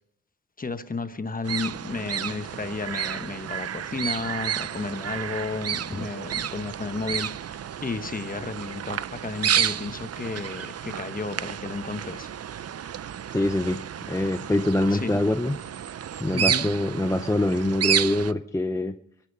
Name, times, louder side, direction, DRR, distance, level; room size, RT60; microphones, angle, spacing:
voice 1, 0.6-12.3 14.9-15.2 16.3-16.7, left 4 dB, 25° left, 10 dB, 1.1 m, -33 dB
sound 1, 1.4-18.3, right 9 dB, 50° right, 0.5 m, -31 dB
voice 2, 13.3-13.8 14.1-15.6 16.2-19.0, left 1 dB, 10° left, 8 dB, 0.6 m, -24 dB
23.5 x 10.0 x 5.5 m, 0.76 s
wide cardioid pair, 140°, 31 cm